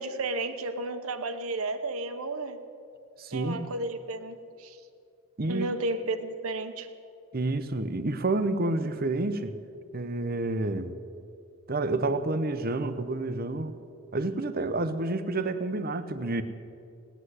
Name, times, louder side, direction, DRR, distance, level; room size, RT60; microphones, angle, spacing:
voice 1, 0.0-2.6 3.3-4.8 5.5-6.9, right 2 dB, 75° right, 8 dB, 1.0 m, -33 dB
voice 2, 3.2-3.6 5.4-5.7 7.3-9.6 9.9-10.9 11.7-13.8 14.1-16.4, right 2 dB, 45° right, 11 dB, 0.8 m, -29 dB
17.5 x 10.0 x 8.1 m, 2.5 s
head